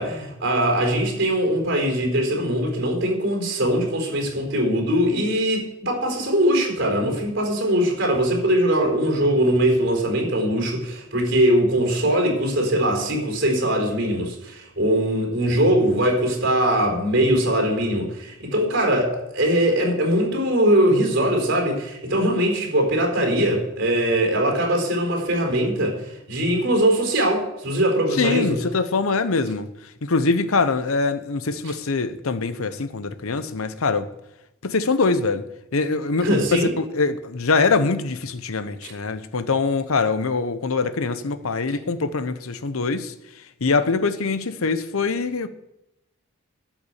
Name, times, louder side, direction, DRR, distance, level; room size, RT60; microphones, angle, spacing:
voice 1, 0.0-26.0 26.3-28.6 31.6-31.7 36.2-36.7 38.8-38.9, right 1 dB, 55° right, 4.5 m, -21 dB
voice 2, 28.1-29.7 30.0-34.1 34.6-35.4 35.7-43.1 43.6-45.5, left 4 dB, 80° left, 0.8 m, -23 dB
12.5 x 6.0 x 8.1 m
head